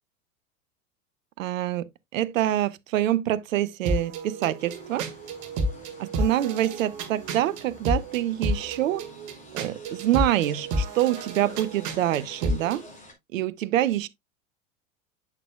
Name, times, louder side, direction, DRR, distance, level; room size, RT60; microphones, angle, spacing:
voice 1, 1.4-5.1 6.0-9.1 9.5-12.8 13.3-14.1, right 13 dB, 75° right, 0.7 m, -26 dB
sound 1, 3.9-12.8, right 1 dB, 50° right, 1.8 m, -31 dB
sound 2, 4.6-13.1, left 2 dB, 20° left, 3.5 m, -48 dB
8.4 x 6.7 x 2.2 m
hypercardioid pair, 85°, 40 cm